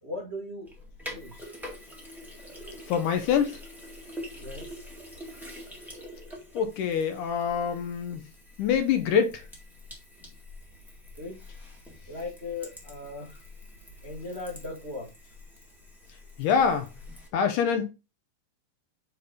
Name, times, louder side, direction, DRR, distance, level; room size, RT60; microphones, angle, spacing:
voice 1, 0.0-0.7 1.0-1.5 4.4-4.8 11.1-11.4 12.1-13.4 14.0-15.3, left 2 dB, 80° right, 0.5 m, -38 dB
Sink (filling or washing), 0.7-17.3, left 1 dB, ahead, 0.5 m, -45 dB
voice 2, 2.9-3.6 6.5-8.3 8.6-9.4 16.4-16.9 17.3-17.9, left 7 dB, 75° left, 2.0 m, -25 dB
8.7 x 3.6 x 4.0 m
omnidirectional pair, 4.2 m